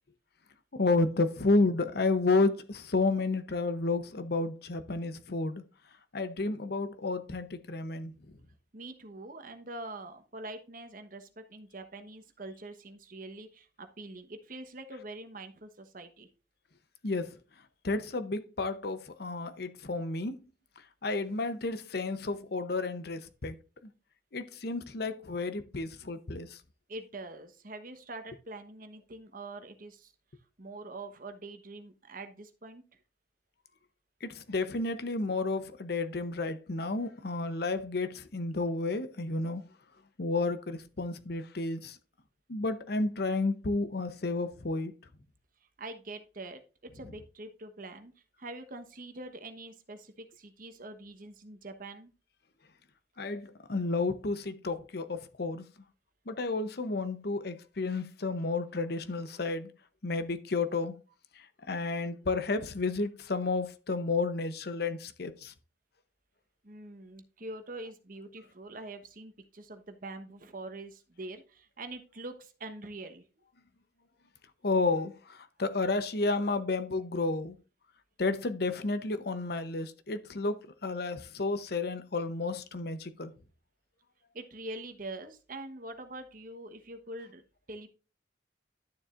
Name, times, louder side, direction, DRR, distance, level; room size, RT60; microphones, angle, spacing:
voice 1, 0.7-5.7 6.1-8.4 17.0-17.4 17.8-20.4 21.0-23.6 23.8-23.9 24.3-26.6 34.2-39.7 40.2-42.0 42.5-44.9 53.2-55.7 56.3-59.7 60.0-61.0 61.3-65.5 74.6-77.6 78.2-83.3, left 3 dB, 60° left, 0.8 m, -31 dB
voice 2, 8.7-16.3 26.9-30.1 30.6-33.0 45.6-48.1 48.4-52.1 66.6-73.2 84.3-87.9, right 2 dB, 50° right, 1.1 m, -44 dB
11.5 x 7.1 x 2.5 m
head